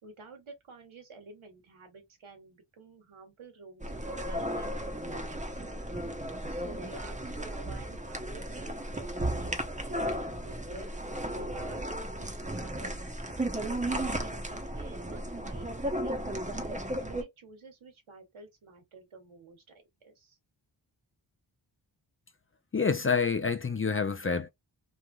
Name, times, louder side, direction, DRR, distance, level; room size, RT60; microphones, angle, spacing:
voice 1, 0.0-5.8 6.5-9.5 9.9-10.9 11.3-12.3 12.6-20.4, right 3 dB, 75° right, 1.4 m, -50 dB
sound 1, 3.8-17.2, right 1 dB, 15° right, 0.9 m, -35 dB
voice 2, 22.7-24.5, left 5 dB, 25° left, 0.5 m, -27 dB
3.2 x 2.4 x 2.4 m
cardioid pair, 50°, 48 cm